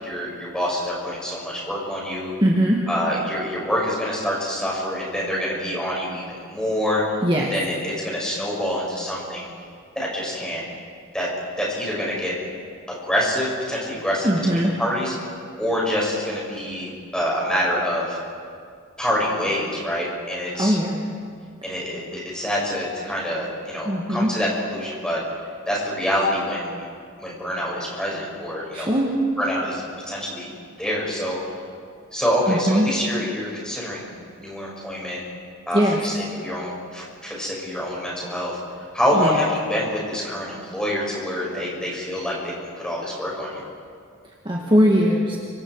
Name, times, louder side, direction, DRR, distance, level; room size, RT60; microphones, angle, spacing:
voice 1, 0.0-2.3 2.9-7.0 7.4-9.5 10.0-10.6 11.1-11.3 11.6-12.3 12.9-15.1 15.6-18.2 19.0-20.8 21.6-25.2 25.7-26.7 27.2-28.9 29.4-30.5 30.8-31.4 32.1-34.1 34.4-35.2 35.7-38.6 38.9-43.6, equal, 5° left, -4 dB, 6.9 m, -26 dB
voice 2, 2.4-2.8 7.2-7.5 14.2-14.7 20.6-21.0 21.6-21.7 23.8-24.3 28.7-29.2 32.5-32.9 35.7-36.0 39.1-39.4 44.4-45.4, equal, 25° right, -2 dB, 2.1 m, -20 dB
30.0 x 26.0 x 5.0 m, 2.2 s
head